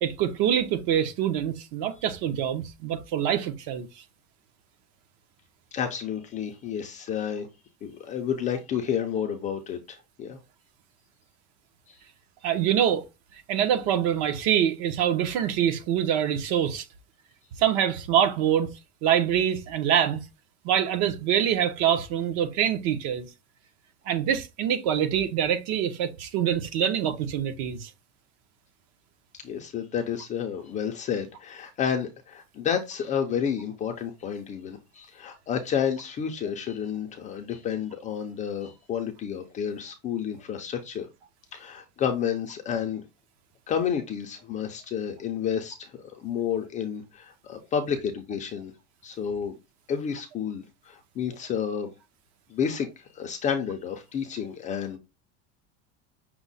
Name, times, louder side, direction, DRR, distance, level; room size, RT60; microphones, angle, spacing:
voice 1, 0.0-3.9 12.4-13.0 13.5-16.8 17.6-18.7 19.0-20.2 20.6-23.3 24.1-27.9, right 9 dB, 50° right, 0.8 m, -25 dB
voice 2, 5.7-7.5 7.8-10.4 11.9-12.0 29.3-41.1 41.5-43.0 43.7-48.7 49.0-49.5 49.9-51.9 52.5-55.0, left 8 dB, 20° left, 0.4 m, -30 dB
6.0 x 2.1 x 3.9 m
cardioid pair, 170°, 34 cm